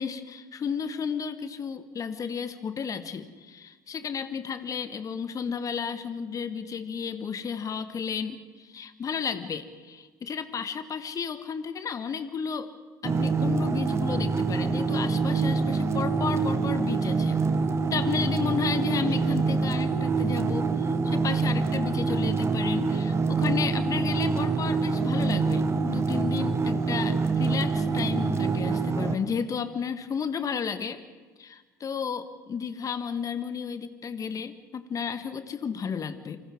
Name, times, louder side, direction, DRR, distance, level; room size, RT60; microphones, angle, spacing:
voice 1, 0.0-12.7 13.0-17.4 17.9-31.0 31.4-36.4, left 6 dB, 35° left, 11 dB, 1.5 m, -33 dB
sound 1, 13.0-29.2, right 4 dB, 30° right, 1.6 m, -26 dB
Guitar, 19.1-20.2, left 3 dB, 75° left, 4.0 m, -46 dB
28.5 x 25.5 x 3.7 m, 1.4 s
figure-of-eight pair, 60°, 10 cm